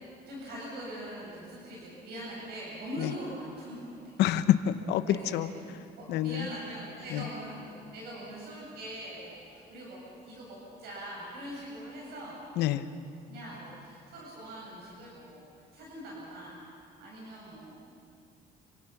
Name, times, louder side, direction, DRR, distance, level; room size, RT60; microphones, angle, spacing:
voice 1, 0.3-4.2 5.0-5.4 5.9-10.0 10.2-12.4 13.3-15.4 15.7-16.6 17.0-17.8, right 1 dB, 70° right, -5 dB, 7.4 m, -42 dB
voice 2, 4.2-5.5 6.1-6.5 7.1-7.3 12.6-12.9, left 11 dB, 80° left, 11 dB, 1.1 m, -27 dB
28.5 x 25.0 x 6.1 m, 2.5 s
cardioid pair, 110°, 17 cm